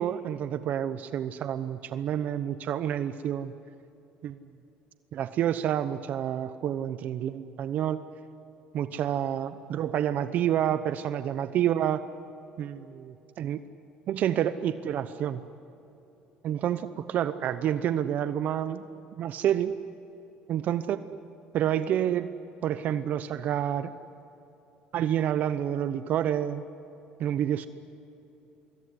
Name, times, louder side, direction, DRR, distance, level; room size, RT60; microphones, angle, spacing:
voice 1, 0.0-3.5 4.2-4.4 5.1-8.0 8.7-12.0 12.6-13.6 14.1-15.4 16.4-18.8 19.2-19.7 20.5-21.0 21.5-22.3 22.6-23.9 24.9-26.6 27.2-27.7, right 10 dB, 55° right, 12 dB, 0.9 m, -28 dB
24.5 x 22.0 x 9.9 m, 2.9 s
cardioid pair, 110°, 3 cm